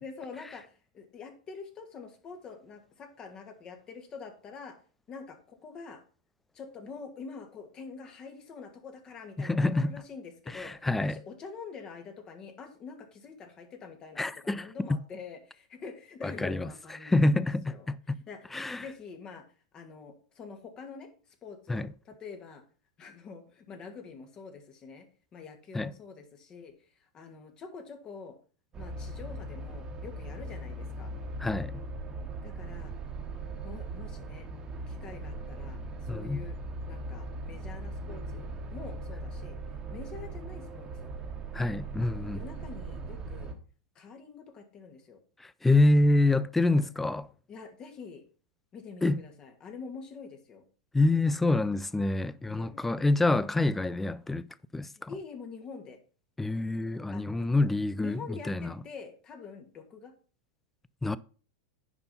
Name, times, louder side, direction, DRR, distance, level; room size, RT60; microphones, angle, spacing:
voice 1, 0.0-4.8 5.1-6.0 6.5-17.9 18.3-18.4 18.7-19.4 19.7-21.1 21.4-22.6 23.0-25.1 25.3-26.7 27.1-28.4 28.8-31.1 32.3-32.9 33.6-34.5 34.9-36.6 36.8-39.6 39.9-41.1 42.0-43.5 43.9-45.2 46.7-46.9 47.5-48.2 48.7-50.6 52.4-52.8 55.1-56.0 57.1-57.2 58.0-60.1, left 5 dB, 30° left, 2.3 m, -46 dB
voice 2, 9.4-9.9 10.5-11.2 14.2-15.0 16.2-16.7 17.0-18.2 18.5-18.8 21.7-21.9 25.7-25.9 31.4-31.8 36.1-36.4 41.5-42.4 45.4-47.3 49.0-49.2 50.9-54.5 54.7-55.1 56.4-58.8 61.0-61.2, left 2 dB, 10° left, 0.5 m, -27 dB
sound 1, 28.7-43.5, right 2 dB, 25° right, 1.6 m, -39 dB
9.8 x 5.3 x 5.6 m
figure-of-eight pair, 95°, 3 cm